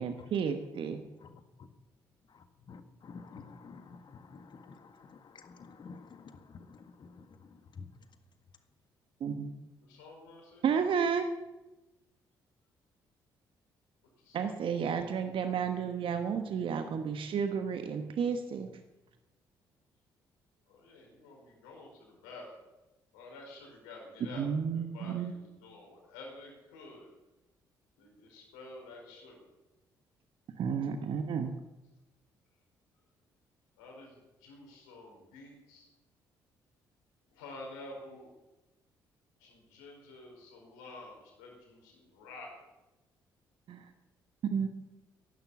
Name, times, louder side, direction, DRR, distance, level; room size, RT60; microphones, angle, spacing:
voice 1, 0.0-1.0 9.2-9.5 10.6-11.3 14.3-18.7 24.3-25.3 30.5-31.5 43.7-43.9 44.5-44.7, right 6 dB, 50° right, 7 dB, 1.2 m, -32 dB
voice 2, 1.2-1.7 2.3-7.9, left 4 dB, 45° left, 8 dB, 1.7 m, -51 dB
voice 3, 9.8-10.8 14.2-14.6 20.7-22.7 23.1-24.5 24.7-27.1 28.0-29.5 33.8-35.9 37.3-38.3 39.4-42.7, left 2 dB, 75° left, 0 dB, 4.7 m, -50 dB
15.5 x 11.5 x 7.1 m, 1.0 s
figure-of-eight pair, 45°, 11 cm